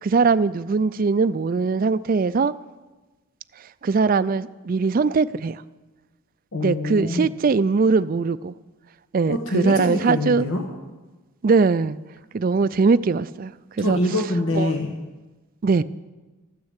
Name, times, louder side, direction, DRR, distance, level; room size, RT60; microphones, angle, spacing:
voice 1, 0.0-2.5 3.8-5.6 6.6-8.5 9.1-10.5 11.4-12.0 12.3-13.5 13.8-14.0 14.6-14.7 15.6-15.8, right 4 dB, 40° right, 14 dB, 0.3 m, -21 dB
voice 2, 6.5-7.3 9.3-10.6 13.8-15.0, left 1 dB, 75° left, 2 dB, 1.3 m, -25 dB
13.5 x 9.7 x 8.1 m, 1.2 s
head